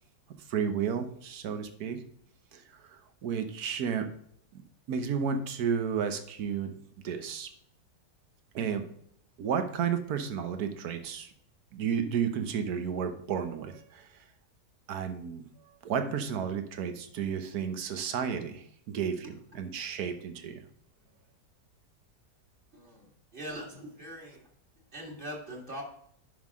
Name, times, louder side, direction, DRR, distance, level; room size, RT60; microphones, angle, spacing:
voice 1, 0.5-2.0 2.5-4.1 4.5-4.6 4.9-6.7 7.0-7.5 8.5-8.9 9.4-11.3 11.7-14.2 14.9-20.6, right 7 dB, 70° right, 8 dB, 1.4 m, -32 dB
voice 2, 22.7-24.4 24.9-25.8, equal, 30° right, -1 dB, 2.3 m, -42 dB
10.0 x 5.7 x 3.6 m, 0.69 s
omnidirectional pair, 1.7 m